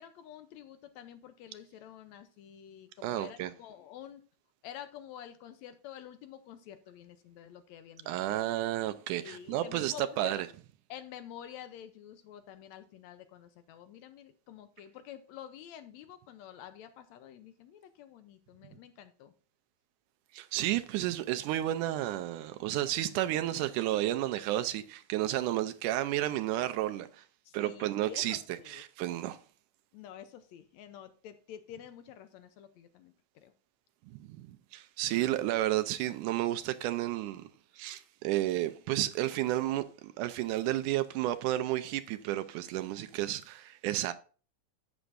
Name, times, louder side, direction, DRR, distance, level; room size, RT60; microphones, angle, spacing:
voice 1, 0.0-4.2 4.6-8.4 9.1-10.4 10.9-19.3 27.5-28.8 29.9-33.5, left 10 dB, 75° left, 1.8 m, -49 dB
voice 2, 3.0-3.5 8.1-10.5 20.3-27.2 27.5-28.4 28.7-29.4 34.2-37.5 37.8-44.1, right 14 dB, 80° right, 2.1 m, -32 dB
11.0 x 8.0 x 2.6 m
omnidirectional pair, 3.6 m